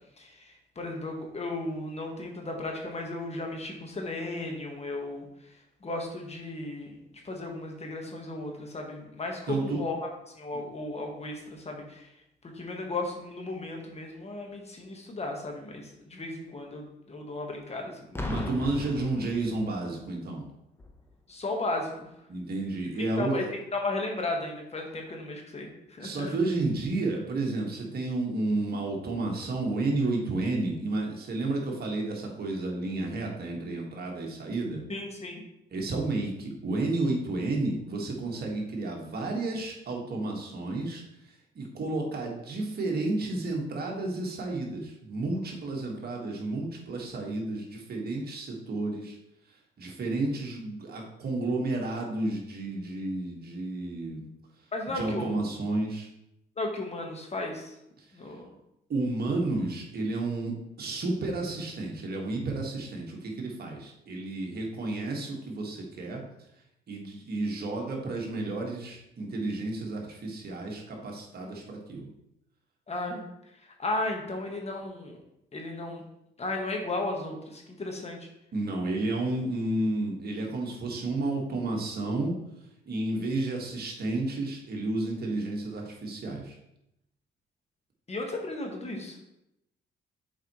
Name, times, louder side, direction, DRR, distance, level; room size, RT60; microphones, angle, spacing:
voice 1, 0.2-5.6 5.8-7.0 7.2-10.0 10.3-12.1 12.5-18.5 21.3-22.1 23.2-23.4 23.7-26.3 34.9-35.4 54.7-55.4 56.6-57.8 58.1-58.5 72.9-73.2 73.6-75.2 75.5-76.0 76.4-78.3 88.1-89.2, left 2 dB, 30° left, 2 dB, 1.3 m, -35 dB
voice 2, 9.5-9.8 18.2-20.5 22.3-23.5 26.0-34.8 35.7-49.2 49.8-54.3 54.9-56.1 58.0-58.1 58.9-66.2 66.9-72.1 78.5-82.3 82.9-86.6, right 2 dB, 50° right, 0 dB, 1.6 m, -31 dB
Boom, 18.1-19.9 20.8-21.0, left 1 dB, 10° left, 0.8 m, -37 dB
7.3 x 4.6 x 3.0 m, 0.83 s
cardioid pair, 90°, 20 cm